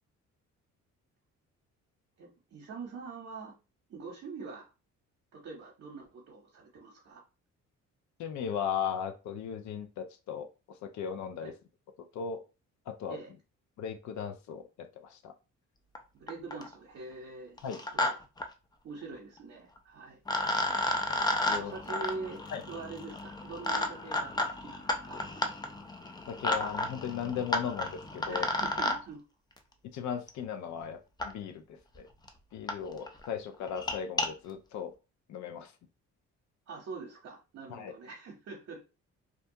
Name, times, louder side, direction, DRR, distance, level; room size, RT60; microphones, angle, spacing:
voice 1, 2.2-3.5 3.9-4.7 5.3-7.2 11.4-11.5 13.1-13.3 16.1-18.2 18.8-20.8 21.6-25.2 28.3-29.2 36.7-38.9, right 4 dB, 55° right, -1 dB, 0.8 m, -44 dB
voice 2, 8.2-11.6 12.0-12.4 12.9-13.2 13.8-15.4 17.6-17.8 21.4-21.7 22.5-22.6 26.3-28.5 29.9-32.1 32.5-35.0 35.3-35.8 37.7-37.9, left 7 dB, 70° left, 7 dB, 0.5 m, -37 dB
sound 1, 15.9-16.0 16.3-16.7 17.6-18.1 18.4-18.5 19.8-19.9 20.3-29.0 30.3-30.4 31.2-31.3 32.0-32.1 32.3-32.4 32.7-32.8 33.1-33.3 33.7-34.3, left 2 dB, 15° left, 0.4 m, -32 dB
2.5 x 2.2 x 2.7 m, 0.29 s
cardioid pair, 90°, 30 cm